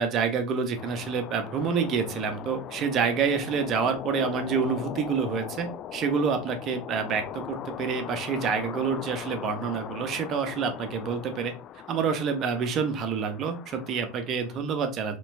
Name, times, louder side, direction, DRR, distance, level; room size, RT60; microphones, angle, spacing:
voice 1, 0.0-11.5 11.9-15.2, right 6 dB, 40° right, 7 dB, 0.9 m, -28 dB
sound 1, 0.8-14.6, left 10 dB, 40° left, 0.3 m, -40 dB
4.2 x 3.2 x 2.6 m, 0.31 s
hypercardioid pair, 80°, 0 cm